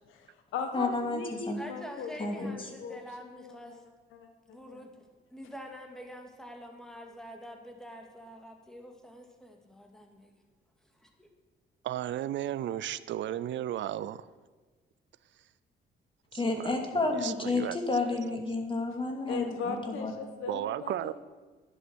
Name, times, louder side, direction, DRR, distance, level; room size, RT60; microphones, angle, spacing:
voice 1, 0.1-3.8 4.1-4.8 19.3-21.1, left 5 dB, 85° left, 6 dB, 1.6 m, -38 dB
voice 2, 0.7-1.6 2.2-2.7 16.3-20.1, left 3 dB, 25° left, 4 dB, 2.6 m, -31 dB
voice 3, 1.6-3.8 4.5-4.9 5.3-10.3 11.0-11.3, equal, 5° left, 3 dB, 2.3 m, -46 dB
voice 4, 11.8-14.3 16.3-17.8 18.3-18.4 20.5-21.1, right 12 dB, 70° right, 17 dB, 0.5 m, -34 dB
11.5 x 11.0 x 6.3 m, 1.3 s
cardioid pair, 90°, 20 cm